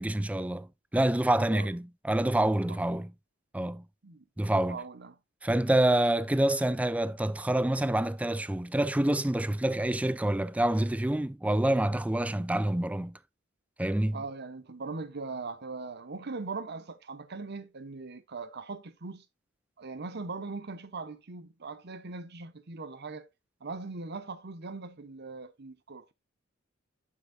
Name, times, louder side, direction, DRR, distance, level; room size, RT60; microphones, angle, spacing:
voice 1, 0.0-3.1 3.5-3.9 4.4-4.8 5.4-13.2 13.8-14.2, right 1 dB, 5° right, 0.3 m, -27 dB
voice 2, 4.5-5.2 14.1-19.2 19.8-23.3 23.6-26.1, right 3 dB, 55° right, 1.0 m, -40 dB
8.3 x 8.1 x 2.3 m
head